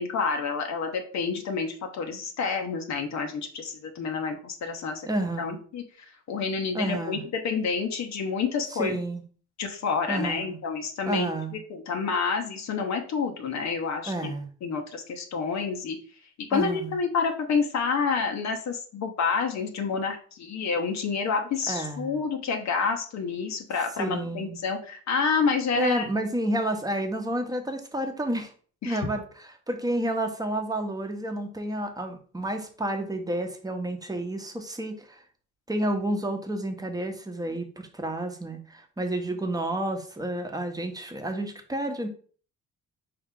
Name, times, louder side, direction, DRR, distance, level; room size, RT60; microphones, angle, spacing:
voice 1, 0.0-5.1 5.4-9.0 9.6-14.3 14.6-16.0 16.5-26.1 28.8-29.0, left 5 dB, 65° left, 4 dB, 0.9 m, -29 dB
voice 2, 5.0-5.6 6.7-7.2 8.7-9.2 10.1-10.6 11.1-11.6 14.1-14.5 16.5-16.9 21.7-22.2 24.0-24.6 25.8-28.5 28.8-35.2 35.7-42.1, right 1 dB, 10° right, 5 dB, 0.9 m, -30 dB
4.7 x 2.9 x 3.6 m, 0.43 s
cardioid pair, 90°, 30 cm